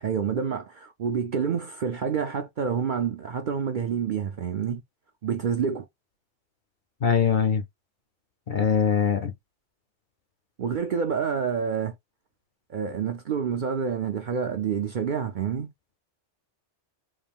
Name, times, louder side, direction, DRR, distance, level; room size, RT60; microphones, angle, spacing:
voice 1, 0.0-4.8 5.2-5.9 10.6-11.9 12.7-15.7, right 7 dB, 55° right, 0.5 m, -28 dB
voice 2, 7.0-7.6 8.5-9.3, left 7 dB, 50° left, 0.6 m, -22 dB
3.6 x 2.5 x 3.5 m
omnidirectional pair, 1.3 m